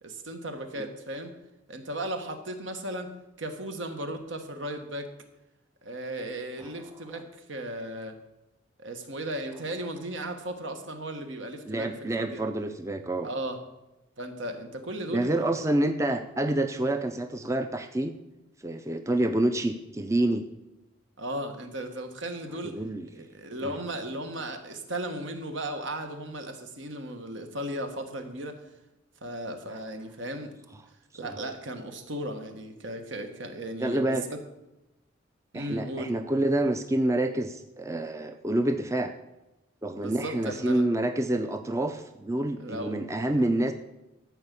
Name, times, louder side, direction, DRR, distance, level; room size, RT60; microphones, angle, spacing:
voice 1, 0.0-1.3 1.7-3.1 3.4-5.1 5.8-8.2 8.8-12.4 13.2-13.6 14.2-15.5 21.2-22.8 23.1-28.6 29.2-30.6 31.1-34.4 35.5-36.1 40.0-40.8 42.6-43.0, right 1 dB, 70° right, 6 dB, 1.5 m, -36 dB
voice 2, 11.6-13.3 15.1-18.1 18.6-20.4 22.7-23.3 23.6-23.7 31.2-31.4 33.8-34.3 35.5-39.1 39.8-43.7, right 1 dB, 15° right, 7 dB, 0.5 m, -28 dB
13.0 x 4.9 x 8.3 m, 0.97 s
head